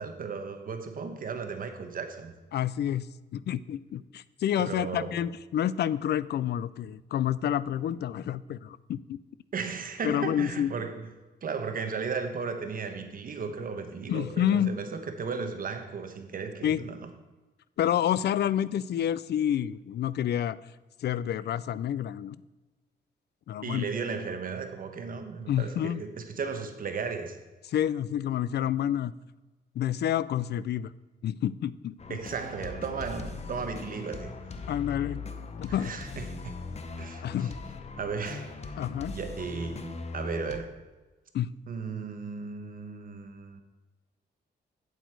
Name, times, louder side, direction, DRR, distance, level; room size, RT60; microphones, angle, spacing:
voice 1, 0.0-2.4 4.5-5.2 9.5-11.1 11.4-17.1 23.6-27.4 32.1-34.4 35.7-36.6 37.0-37.5 38.0-38.8 39.1-40.8 41.7-43.6, right 5 dB, 50° right, 1.0 m, -35 dB
voice 2, 2.5-3.1 3.3-9.2 10.0-10.7 14.1-14.7 16.6-16.8 17.8-20.6 21.0-22.4 23.5-23.8 25.5-26.0 27.7-29.1 29.8-30.9 31.2-31.9 34.7-35.2 35.6-35.9 37.2-37.5 38.8-39.1 41.3-41.5, left 10 dB, 70° left, 0.4 m, -28 dB
sound 1, 32.0-40.6, left 4 dB, 35° left, 0.8 m, -40 dB
8.4 x 7.9 x 4.6 m
wide cardioid pair, 135°, 18 cm